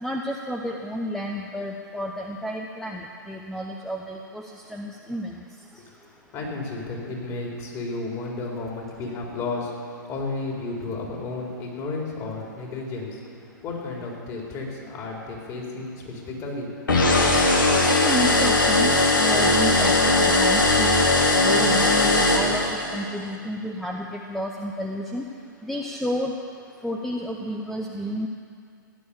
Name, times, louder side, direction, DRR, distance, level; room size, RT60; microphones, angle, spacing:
voice 1, 0.0-4.4 4.7-5.3 17.9-18.9 19.2-21.0 21.4-22.6 22.9-25.2 25.6-26.3 26.8-28.3, equal, ahead, 0 dB, 0.8 m, -31 dB
voice 2, 5.8-13.2 13.6-16.7, left 3 dB, 30° left, -2 dB, 3.7 m, -33 dB
sound 1, 16.9-23.1, left 2 dB, 75° left, 2.7 m, -19 dB
16.0 x 10.5 x 7.1 m, 2.3 s
figure-of-eight pair, 110°, 11 cm